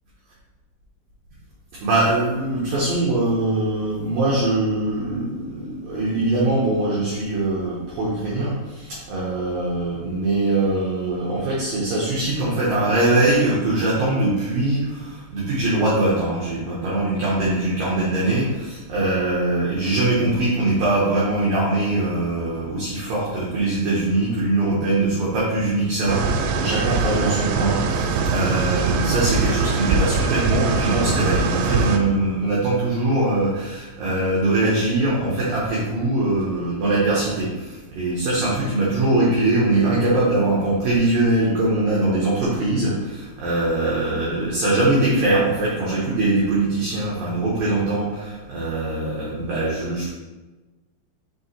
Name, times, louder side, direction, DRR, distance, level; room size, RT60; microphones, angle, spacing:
voice 1, 1.8-50.1, right 2 dB, 70° right, -6 dB, 2.3 m, -22 dB
sound 1, 26.1-32.0, right 4 dB, 85° right, 2.9 m, -22 dB
6.8 x 5.2 x 3.2 m, 1.2 s
omnidirectional pair, 5.2 m